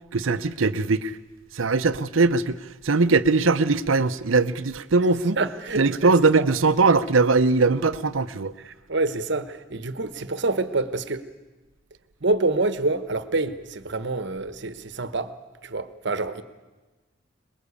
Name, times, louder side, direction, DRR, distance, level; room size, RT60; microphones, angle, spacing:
voice 1, 0.1-1.2 1.5-5.4 5.8-8.5, right 3 dB, 85° right, 0.7 m, -21 dB
voice 2, 5.4-6.4 8.6-11.3 12.2-15.3 15.6-16.4, right 3 dB, 60° right, 1.2 m, -27 dB
23.0 x 21.0 x 8.4 m
head